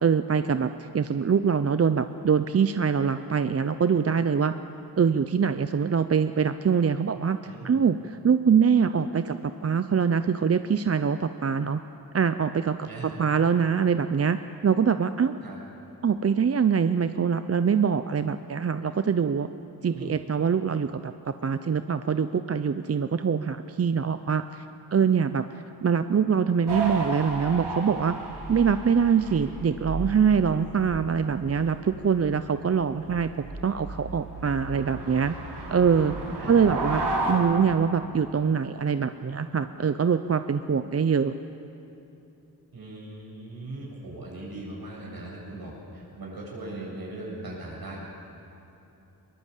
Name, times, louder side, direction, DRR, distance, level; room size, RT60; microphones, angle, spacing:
voice 1, 0.0-4.5 5.0-11.8 12.1-12.9 13.2-14.4 14.6-15.4 16.0-19.5 19.8-24.6 24.9-25.4 25.8-28.1 28.5-33.3 33.6-35.3 35.7-36.1 36.5-37.0 37.3-41.3, right 6 dB, 40° right, 11 dB, 0.6 m, -24 dB
sound 1, 26.7-37.3, right 2 dB, 85° right, 4.5 m, -34 dB
voice 2, 42.7-48.0, right 2 dB, 65° right, -2 dB, 7.9 m, -39 dB
22.5 x 21.5 x 8.3 m, 2.9 s
cardioid pair, 80°, 39 cm